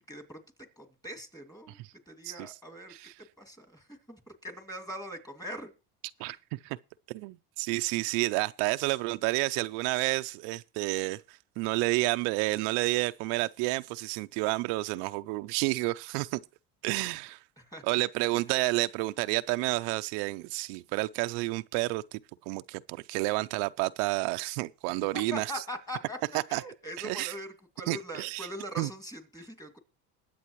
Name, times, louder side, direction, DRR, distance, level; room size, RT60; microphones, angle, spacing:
voice 1, 0.1-0.4 0.8-1.8 2.1-2.9 3.4-5.7 6.2-6.4 17.7-18.0 18.3-18.4 25.3-26.2 26.5-27.5 27.8-29.8, equal, 10° left, 2.4 m, -41 dB
voice 2, 2.2-2.6 2.9-3.2 6.2-6.4 6.6-6.8 7.1-16.4 16.8-17.4 17.8-22.2 22.5-25.6 26.3-26.6 27.0-27.3 27.9-28.5 28.8-28.9, right 21 dB, 75° right, 0.6 m, -30 dB
21.5 x 8.4 x 3.1 m
supercardioid pair, 115°, 42 cm